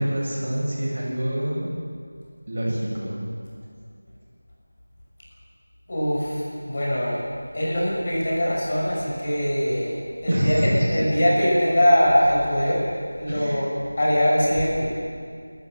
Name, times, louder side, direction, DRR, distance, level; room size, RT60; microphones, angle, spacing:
voice 1, 0.0-1.7 2.5-3.2 10.3-11.0 13.3-13.6, equal, 50° right, -4 dB, 8.0 m, -25 dB
voice 2, 5.9-7.2 7.5-13.7 14.0-14.9, equal, 35° left, -5 dB, 6.7 m, -22 dB
29.5 x 14.0 x 7.9 m, 2.2 s
figure-of-eight pair, 175°, 0 cm